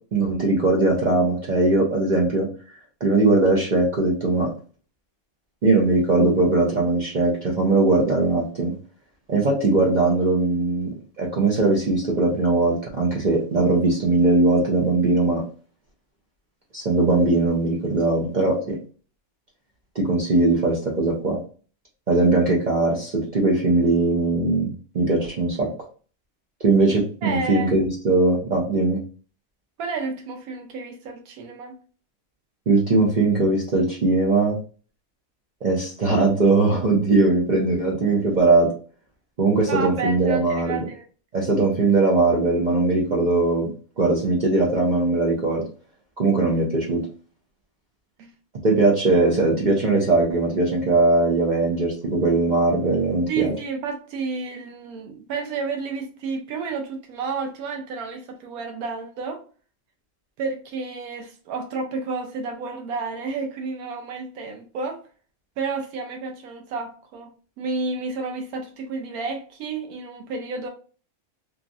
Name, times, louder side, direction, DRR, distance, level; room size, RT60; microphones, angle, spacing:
voice 1, 0.1-2.5 3.0-4.5 5.6-8.7 9.3-10.9 11.2-15.4 16.7-18.8 19.9-21.4 22.1-25.7 26.6-29.0 32.7-34.6 35.6-38.7 39.4-40.8 41.3-43.7 44.0-45.6 46.2-47.0 48.6-53.5, right 2 dB, 50° right, 0.5 m, -20 dB
voice 2, 27.2-27.7 29.8-31.7 39.7-41.0 48.2-48.3 53.3-59.4 60.4-65.0 65.6-67.3 67.6-70.7, right 4 dB, 85° right, 1.0 m, -31 dB
3.0 x 2.3 x 2.5 m
omnidirectional pair, 1.5 m